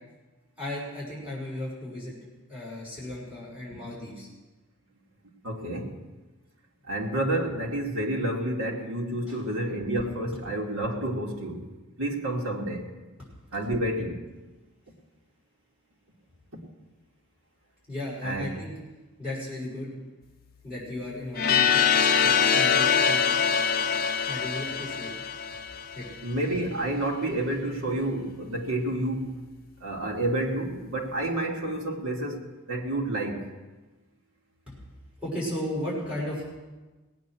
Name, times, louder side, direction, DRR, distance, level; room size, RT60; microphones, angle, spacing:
voice 1, 0.6-2.2 2.5-4.3 9.3-9.4 13.2-13.3 17.9-18.7 19.2-19.9 20.6-21.8 22.2-23.4 24.2-25.1 25.9-26.1 34.7-34.8 35.2-36.5, left 1 dB, 5° right, -8 dB, 6.0 m, -35 dB
voice 2, 5.4-6.0 6.9-11.6 12.0-12.9 13.5-14.2 18.2-18.5 26.2-29.4 29.8-33.5, right 1 dB, 80° right, -1 dB, 2.8 m, -29 dB
sound 1, 21.4-26.2, left 7 dB, 45° left, 0.6 m, -24 dB
19.0 x 9.5 x 6.4 m, 1.2 s
head